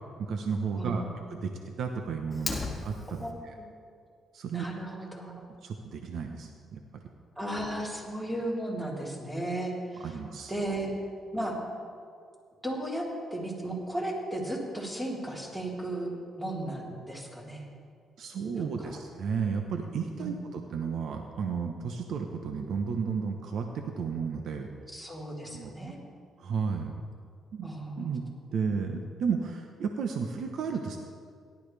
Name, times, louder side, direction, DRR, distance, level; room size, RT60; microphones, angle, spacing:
voice 1, 0.2-1.0 1.3-1.5 1.8-3.2 4.3-4.6 5.6-7.0 10.0-10.5 18.2-24.7 25.5-25.7 26.4-26.9 27.5-27.7 28.0-28.2 28.5-31.0, right 5 dB, 70° right, 4 dB, 1.0 m, -33 dB
voice 2, 0.7-1.1 3.2-3.3 3.6-3.7 4.5-5.4 7.4-10.1 10.5-10.9 11.3-11.6 12.6-16.1 16.4-17.7 18.6-19.0 20.2-20.3 24.9-26.0 27.6-28.1, right 1 dB, 15° right, -4 dB, 3.6 m, -35 dB
Fire, 2.3-3.3, left 2 dB, 15° left, 2.1 m, -35 dB
17.5 x 12.0 x 3.4 m, 2.2 s
cardioid pair, 90°, 0 cm